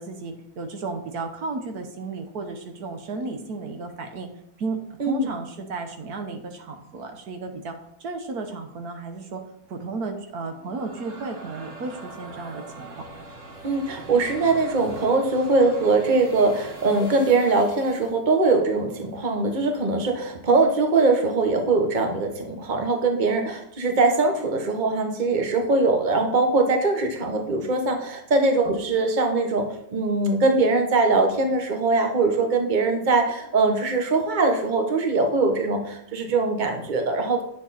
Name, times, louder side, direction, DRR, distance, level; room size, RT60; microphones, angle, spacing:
voice 1, 0.0-4.3 4.6-9.4 9.7-13.0, right 3 dB, 75° right, 5 dB, 1.6 m, -33 dB
sound 1, 10.4-18.1, right 2 dB, 50° right, 2.0 m, -42 dB
voice 2, 13.6-37.4, right 3 dB, 30° right, 4 dB, 1.3 m, -22 dB
9.8 x 7.0 x 4.2 m, 0.75 s
omnidirectional pair, 1.6 m